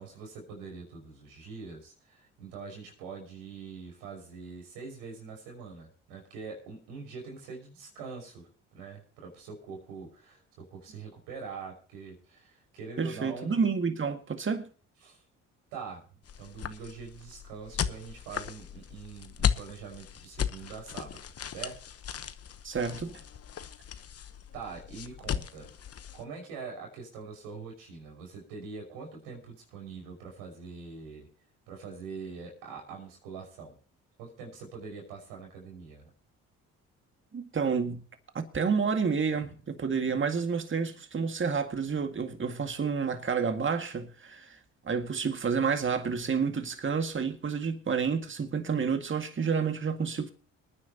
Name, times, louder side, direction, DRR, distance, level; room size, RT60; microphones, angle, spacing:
voice 1, 0.0-13.6 15.0-15.2 15.7-16.0 16.4-21.2 21.5-21.9 24.5-25.7 26.1-31.3 31.7-33.8 34.2-36.1 39.4-39.5, right 5 dB, 90° right, 5.6 m, -44 dB
voice 2, 13.0-14.7 22.6-23.2 37.3-38.0 38.3-44.6 44.8-50.3, right 5 dB, 35° right, 1.9 m, -29 dB
sound 1, 16.2-26.2, left 8 dB, 45° left, 1.0 m, -36 dB
25.5 x 9.8 x 2.9 m
supercardioid pair, 60°, 33 cm